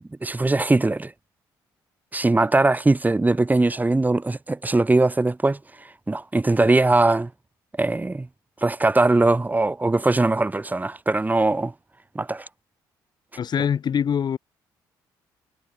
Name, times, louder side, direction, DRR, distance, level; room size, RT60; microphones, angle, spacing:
voice 1, 0.2-1.1 2.1-5.6 6.1-7.3 7.8-8.3 8.6-11.7 12.1-12.5, right 2 dB, 20° right, 4.6 m, -20 dB
voice 2, 13.4-14.4, left 8 dB, 55° left, 3.7 m, -23 dB
supercardioid pair, 65°, 9 cm